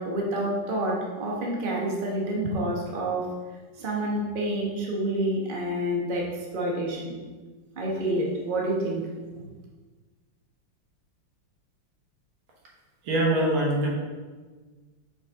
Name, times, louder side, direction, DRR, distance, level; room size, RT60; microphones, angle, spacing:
voice 1, 0.0-3.3 3.8-7.1 7.7-9.1, right 1 dB, 30° right, -3 dB, 1.1 m, -28 dB
voice 2, 13.0-13.9, right 1 dB, 85° right, -3 dB, 2.1 m, -23 dB
5.7 x 5.4 x 3.6 m, 1.3 s
omnidirectional pair, 2.1 m